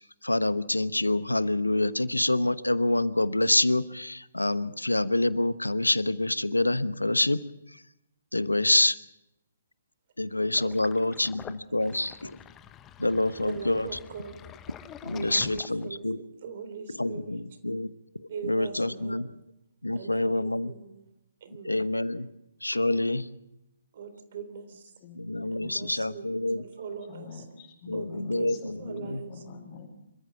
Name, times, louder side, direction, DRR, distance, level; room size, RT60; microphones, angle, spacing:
voice 1, 0.2-7.4 8.3-9.0 10.2-12.4 13.0-14.0 15.0-16.2 16.9-17.9 18.2-19.3 19.8-20.7 21.6-22.3 22.6-23.3 25.1-26.6 27.9-29.2, left 2 dB, 85° left, 15 dB, 1.0 m, -27 dB
Sink (filling or washing), 10.5-16.1, left 10 dB, 15° left, 0.9 m, -47 dB
voice 2, 13.4-14.4 15.1-17.4 18.3-19.2 19.9-21.0 21.4-21.8 23.9-24.8 25.5-26.3 26.5-27.3 27.9-29.3, right 6 dB, 45° right, 9 dB, 3.4 m, -41 dB
voice 3, 24.6-25.7 27.1-29.9, left 5 dB, 30° left, -2 dB, 4.8 m, -46 dB
26.5 x 14.5 x 7.2 m, 0.88 s
figure-of-eight pair, 130°, 0 cm